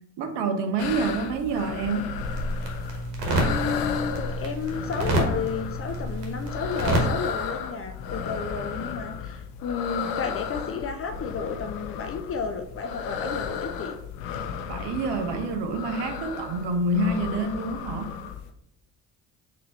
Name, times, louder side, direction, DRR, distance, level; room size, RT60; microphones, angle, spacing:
voice 1, 0.2-2.1 14.7-18.2, right 2 dB, 60° right, 6 dB, 0.8 m, -27 dB
sound 1, 0.8-18.5, left 7 dB, 75° left, 0.6 m, -35 dB
sound 2, 2.2-7.1, right 1 dB, 85° right, 1.1 m, -28 dB
voice 2, 3.4-14.0, left 5 dB, 30° left, 7 dB, 0.4 m, -32 dB
4.0 x 2.7 x 4.2 m, 0.77 s
hypercardioid pair, 65°, 48 cm